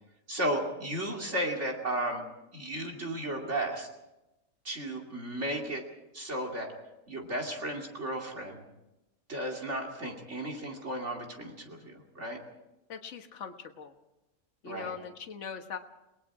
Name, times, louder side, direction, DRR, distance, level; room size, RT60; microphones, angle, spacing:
voice 1, 0.3-2.2 2.5-3.9 4.6-5.8 6.1-6.7 7.1-8.6 9.3-12.4 14.6-15.0, right 1 dB, 50° right, 1 dB, 2.9 m, -34 dB
voice 2, 12.9-13.9 14.6-15.8, left 6 dB, 55° left, 6 dB, 1.6 m, -41 dB
29.5 x 20.0 x 4.8 m, 0.95 s
omnidirectional pair, 1.5 m